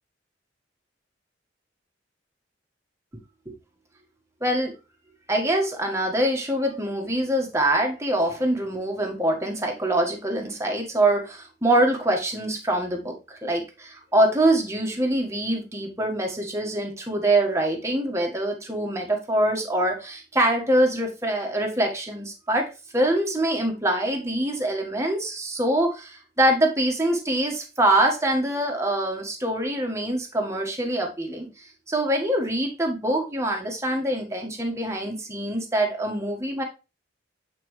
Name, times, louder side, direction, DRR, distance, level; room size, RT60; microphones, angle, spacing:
voice 1, 4.4-4.7 5.3-31.5 31.9-36.6, right 1 dB, 15° right, 1 dB, 1.5 m, -24 dB
8.6 x 4.6 x 3.2 m, 0.28 s
head